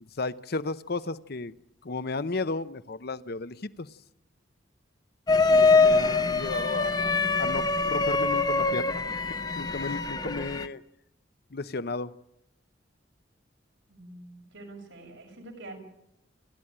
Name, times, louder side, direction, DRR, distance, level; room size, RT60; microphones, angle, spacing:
voice 1, 0.0-1.5 1.8-3.9 5.5-9.1 9.6-10.8 11.5-12.1, left 3 dB, 55° left, 0.8 m, -33 dB
sound 1, 5.3-10.7, left 3 dB, 20° left, 0.8 m, -24 dB
voice 2, 13.9-15.8, right 2 dB, 90° right, 6.7 m, -45 dB
29.0 x 12.5 x 8.8 m
head